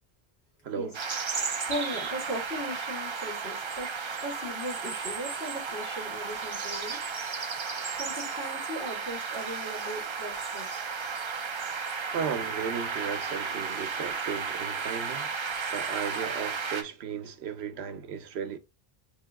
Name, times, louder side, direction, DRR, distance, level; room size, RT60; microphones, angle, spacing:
voice 1, 0.6-1.0 1.3-1.7 7.7-8.0 12.1-15.3 15.7-18.6, right 7 dB, 90° right, 0.9 m, -36 dB
sound 1, 0.9-16.8, right 5 dB, 40° right, 0.4 m, -34 dB
voice 2, 1.6-3.9 4.2-7.0 7.9-10.8, equal, 80° left, 2.0 m, -38 dB
3.5 x 2.9 x 3.5 m
omnidirectional pair, 1.0 m